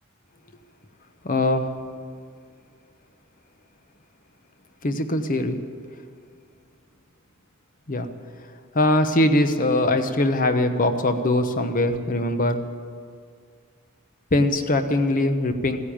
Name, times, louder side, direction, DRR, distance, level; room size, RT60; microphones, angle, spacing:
voice 1, 1.2-1.7 4.8-5.6 7.9-8.1 8.7-12.6 14.3-15.8, left 1 dB, 40° left, 8 dB, 1.0 m, -21 dB
15.5 x 9.8 x 8.7 m, 2.1 s
head